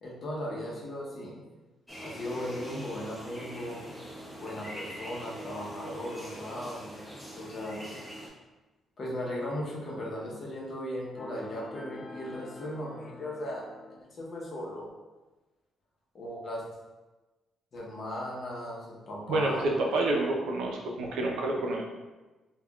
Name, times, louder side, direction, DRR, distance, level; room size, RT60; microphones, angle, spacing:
voice 1, 0.0-1.4 2.0-3.9 4.4-7.9 9.0-13.6 14.0-14.9 16.1-16.6 17.7-19.7, left 1 dB, 50° left, -3 dB, 0.8 m, -37 dB
sound 1, 1.9-8.3, right 1 dB, ahead, 0.7 m, -43 dB
sound 2, 11.2-14.0, left 2 dB, 30° left, 0.3 m, -45 dB
voice 2, 19.3-21.8, right 2 dB, 85° right, 0 dB, 0.5 m, -28 dB
3.5 x 2.2 x 2.3 m, 1.2 s
cardioid pair, 90°, 0 cm